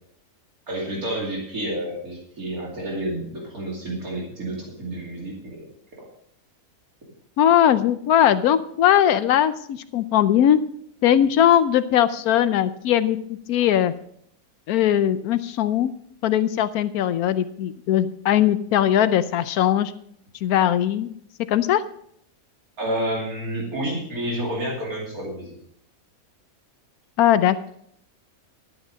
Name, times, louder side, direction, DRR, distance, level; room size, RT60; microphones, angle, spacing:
voice 1, 0.7-5.6 22.8-25.6, right 1 dB, 80° right, -3 dB, 3.1 m, -29 dB
voice 2, 7.4-10.6 11.0-13.2 13.5-13.9 14.7-15.9 16.2-19.9 20.4-21.1 21.5-21.8 27.2-27.7, left 10 dB, 90° left, 13 dB, 1.1 m, -19 dB
12.0 x 9.1 x 5.0 m, 0.67 s
omnidirectional pair, 1.5 m